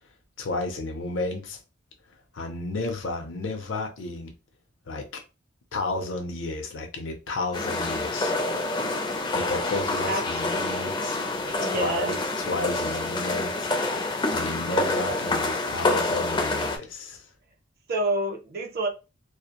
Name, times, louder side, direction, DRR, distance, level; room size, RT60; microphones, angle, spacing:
voice 1, 0.4-1.6 2.3-4.3 4.9-5.2 5.7-8.4 9.3-11.2 11.6-14.0 14.3-17.2, left 2 dB, 70° left, 0.6 m, -32 dB
sound 1, 7.5-16.8, left 2 dB, 25° left, 0.4 m, -27 dB
voice 2, 11.6-12.2 17.9-18.9, right 2 dB, 50° right, 0.6 m, -27 dB
2.4 x 2.0 x 2.8 m
head